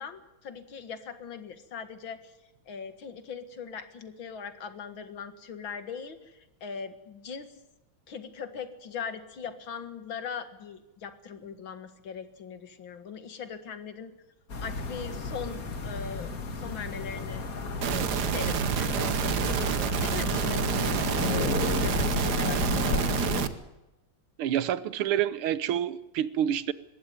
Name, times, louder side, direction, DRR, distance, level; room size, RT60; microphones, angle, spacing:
voice 1, 0.0-2.3 2.7-7.5 8.1-14.1 14.6-17.4 17.9-23.0, left 6 dB, 70° left, 10 dB, 2.5 m, -40 dB
sound 1, 14.5-23.5, left 3 dB, 45° left, 2.2 m, -32 dB
sound 2, 17.8-23.5, right 8 dB, 55° right, 1.5 m, -28 dB
voice 2, 24.4-26.7, right 10 dB, 90° right, 16 dB, 1.8 m, -28 dB
20.5 x 16.5 x 9.3 m, 0.96 s
omnidirectional pair, 2.3 m